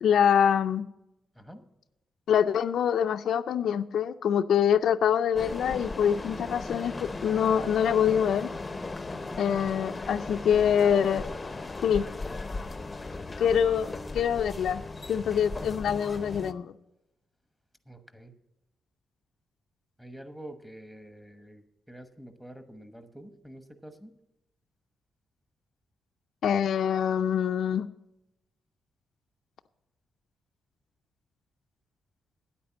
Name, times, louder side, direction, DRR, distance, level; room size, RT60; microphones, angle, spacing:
voice 1, 0.0-0.9 2.3-6.9 7.2-8.5 9.4-11.2 11.8-12.0 13.4-14.8 15.1-16.7 26.4-27.9, left 8 dB, 70° left, 9 dB, 0.4 m, -25 dB
sound 1, 5.3-16.5, left 3 dB, 20° left, 0.7 m, -37 dB
voice 2, 9.3-9.7 17.9-18.3 20.0-24.1, right 1 dB, 5° right, 9 dB, 1.1 m, -47 dB
9.6 x 8.5 x 7.3 m, 0.91 s
cardioid pair, 135°, 0 cm